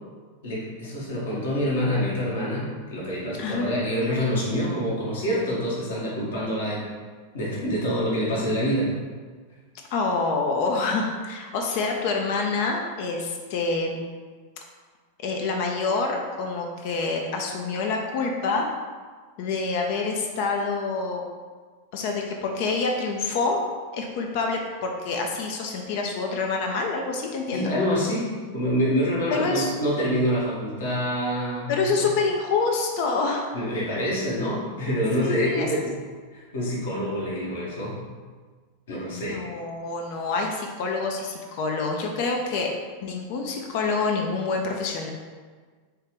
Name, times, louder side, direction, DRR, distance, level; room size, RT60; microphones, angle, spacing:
voice 1, 0.4-6.9 7.3-8.9 27.5-31.9 33.5-35.9 36.3-38.0 38.9-39.4, equal, 60° left, -6 dB, 1.1 m, -26 dB
voice 2, 3.4-3.7 9.9-14.0 15.2-18.7 19.4-21.2 21.9-23.6 23.9-27.7 29.3-29.8 31.7-33.5 33.9-34.1 35.2-35.9 39.1-42.7 43.0-45.1, left 4 dB, 45° left, 2 dB, 0.4 m, -27 dB
3.3 x 3.2 x 3.0 m, 1.5 s
figure-of-eight pair, 90°, 0 cm